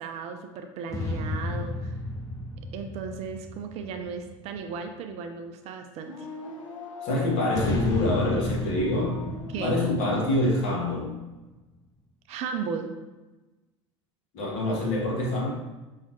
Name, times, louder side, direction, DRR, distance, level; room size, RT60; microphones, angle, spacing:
voice 1, 0.0-1.9 2.7-6.3 9.5-9.8 12.3-12.9, right 6 dB, 40° right, 6 dB, 0.4 m, -35 dB
sound 1, 0.9-4.6 7.5-11.3, left 2 dB, 20° left, 0.6 m, -33 dB
sound 2, 6.0-10.3, left 2 dB, 75° left, 0.5 m, -41 dB
voice 2, 7.0-9.2 9.6-11.1 14.3-15.5, left 1 dB, 50° left, -2 dB, 1.1 m, -25 dB
5.5 x 2.4 x 2.8 m, 1.1 s
figure-of-eight pair, 70°, 16 cm